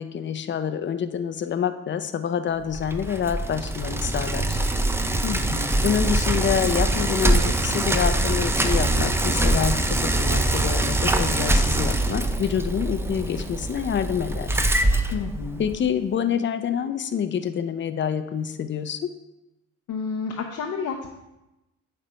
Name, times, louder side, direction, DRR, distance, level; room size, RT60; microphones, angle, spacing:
voice 1, 0.0-4.6 5.8-9.8 10.0-14.5 15.6-19.1, left 8 dB, 40° left, 10 dB, 0.6 m, -27 dB
Bicycle, 2.7-15.9, right 1 dB, 10° right, 0.5 m, -23 dB
voice 2, 5.2-5.8 15.1-15.6 19.9-21.1, left 5 dB, 75° left, 1 dB, 0.8 m, -30 dB
8.8 x 3.4 x 5.1 m, 0.95 s
cardioid pair, 90°, 30 cm